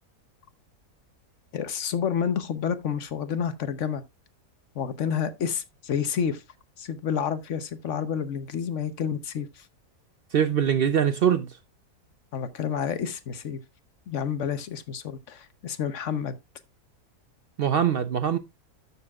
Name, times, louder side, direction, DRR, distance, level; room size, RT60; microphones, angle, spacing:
voice 1, 1.5-4.0 4.7-6.4 6.8-9.7 12.3-13.6 14.1-16.4, left 7 dB, 55° left, 1.1 m, -29 dB
voice 2, 10.3-11.5 17.6-18.4, right 8 dB, 70° right, 0.5 m, -22 dB
12.5 x 6.9 x 2.3 m
omnidirectional pair, 1.7 m